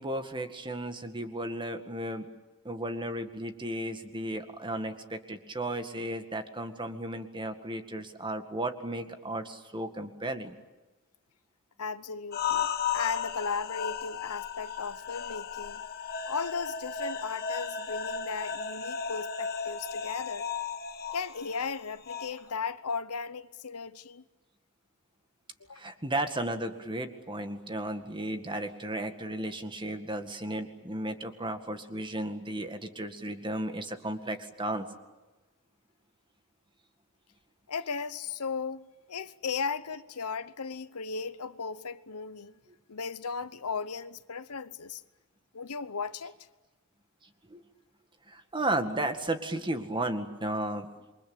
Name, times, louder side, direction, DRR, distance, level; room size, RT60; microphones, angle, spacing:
voice 1, 0.0-2.3 2.6-10.6 25.7-34.9 47.5-47.6 48.3-50.9, right 1 dB, 20° right, 2.0 m, -34 dB
voice 2, 11.8-15.8 16.2-20.5 21.1-24.2 25.6-25.9 37.7-42.5 42.9-45.0 45.5-46.3, left 5 dB, 80° left, 1.0 m, -36 dB
sound 1, 12.3-22.3, left 6 dB, 45° left, 1.6 m, -35 dB
28.0 x 24.0 x 8.8 m
head